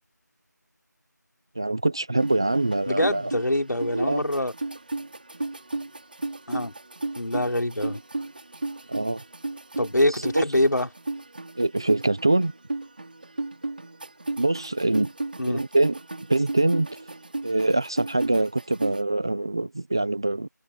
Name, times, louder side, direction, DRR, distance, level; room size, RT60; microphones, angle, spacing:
voice 1, 1.5-3.3 3.9-4.2 8.9-9.2 10.1-10.4 11.6-12.5 14.4-15.1 15.5-16.0 16.3-16.9 17.4-20.5, right 2 dB, 15° right, 1.1 m, -24 dB
sound 1, 2.2-19.0, right 2 dB, 30° right, 4.6 m, -34 dB
voice 2, 2.9-4.5 6.5-6.7 7.2-8.0 9.8-10.9 15.4-15.6, left 1 dB, 75° left, 3.8 m, -24 dB
figure-of-eight pair, 175°, 10 cm